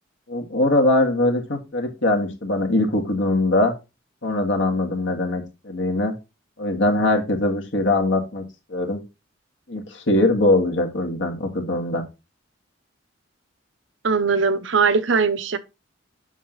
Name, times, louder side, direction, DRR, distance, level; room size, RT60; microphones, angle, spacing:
voice 1, 0.3-3.7 4.2-6.1 6.6-8.4 8.7-9.0 9.7-12.0, left 2 dB, 65° left, 2.0 m, -21 dB
voice 2, 14.0-15.6, right 5 dB, 70° right, 0.8 m, -20 dB
7.2 x 5.9 x 3.8 m
head